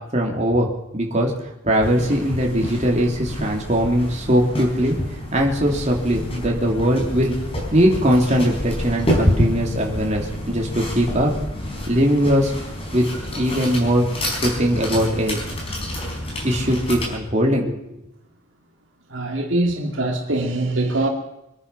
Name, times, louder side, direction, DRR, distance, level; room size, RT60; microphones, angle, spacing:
voice 1, 0.1-0.7 0.9-1.3 1.6-5.0 5.3-7.4 7.7-11.3 11.9-12.5 12.9-13.1 13.4-14.0 14.4-15.4 16.4-17.8, equal, 35° right, 3.0 m, -20 dB
sound 1, 1.8-17.1, equal, 30° left, 4.5 m, -28 dB
voice 2, 19.1-21.1, right 2 dB, 70° right, 2.2 m, -23 dB
24.5 x 9.8 x 5.8 m
head